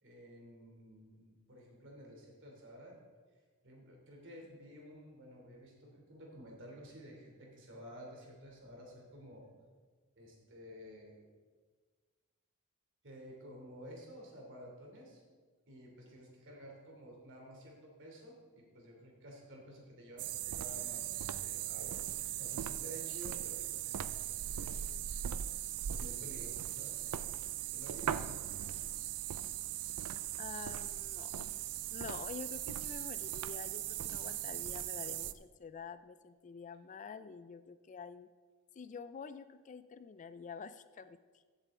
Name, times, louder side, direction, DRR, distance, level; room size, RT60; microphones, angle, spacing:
voice 1, 0.0-3.0 3.6-9.5 10.2-11.2 13.0-15.2 15.7-23.8 24.2-25.0 25.9-27.1 27.7-28.2, equal, 60° right, 0 dB, 3.0 m, -52 dB
sound 1, 20.2-35.3, right 11 dB, 85° right, 0.4 m, -39 dB
voice 2, 30.4-31.5 31.9-38.3 38.7-41.2, left 5 dB, 35° left, 13 dB, 0.4 m, -48 dB
15.0 x 8.3 x 3.7 m, 1.5 s
head